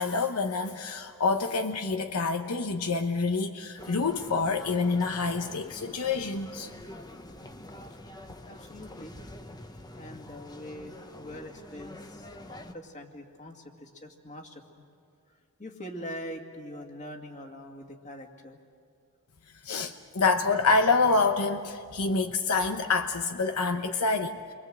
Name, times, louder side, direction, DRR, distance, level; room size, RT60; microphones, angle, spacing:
voice 1, 0.0-6.7 19.6-24.5, left 4 dB, 80° left, 7 dB, 0.9 m, -27 dB
sound 1, 3.8-12.7, left 1 dB, 20° left, 0.9 m, -46 dB
voice 2, 8.4-9.2 9.9-14.6 15.6-18.6, equal, 35° left, 3 dB, 2.2 m, -43 dB
29.0 x 23.0 x 7.8 m, 2.3 s
head